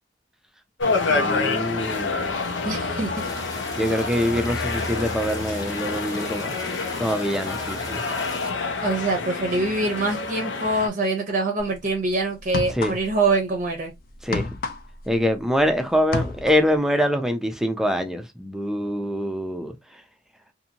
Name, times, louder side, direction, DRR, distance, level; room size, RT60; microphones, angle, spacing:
sound 1, 0.8-10.9, left 3 dB, 90° left, 0.7 m, -28 dB
voice 1, 0.8-2.3 3.8-6.5 7.0-8.0 12.7-13.0 14.2-14.5 15.1-19.7, equal, 5° right, 0.4 m, -24 dB
voice 2, 2.6-3.1 8.8-13.9, right 2 dB, 45° right, 0.6 m, -24 dB
sound 2, 3.2-8.5, left 2 dB, 20° left, 0.8 m, -37 dB
wall ball, 11.6-11.8 12.4-13.3 13.6-15.7 16.0-16.7, left 3 dB, 50° left, 0.5 m, -30 dB
2.6 x 2.6 x 2.7 m
head